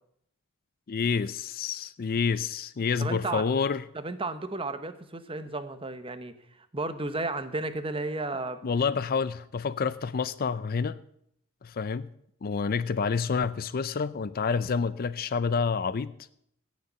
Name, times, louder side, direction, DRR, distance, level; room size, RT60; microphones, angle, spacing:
voice 1, 0.9-3.8 8.6-11.0 11.6-12.1 12.4-16.1, left 5 dB, 40° left, 16 dB, 0.4 m, -28 dB
voice 2, 3.0-3.4 3.9-6.3 6.7-8.6, right 2 dB, 25° right, 10 dB, 0.9 m, -33 dB
16.5 x 6.5 x 7.3 m, 0.72 s
head